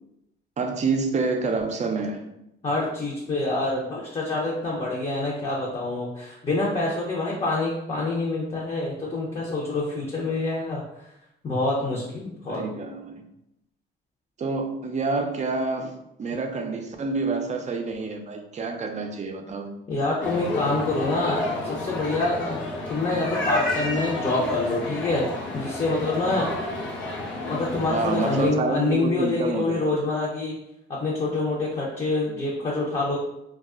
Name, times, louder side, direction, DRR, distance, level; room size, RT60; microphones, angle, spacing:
voice 1, 0.6-2.3 12.5-13.2 14.4-19.7 27.9-29.9, right 3 dB, 35° right, 4 dB, 0.4 m, -28 dB
voice 2, 2.6-10.8 11.4-12.6 19.9-22.6 22.9-25.2 25.5-26.5 27.4-30.6 31.0-33.2, left 2 dB, 30° left, -4 dB, 0.7 m, -26 dB
sound 1, 20.2-28.5, left 2 dB, 75° left, 0.7 m, -30 dB
2.3 x 2.0 x 3.5 m, 0.84 s
cardioid pair, 90°, 20 cm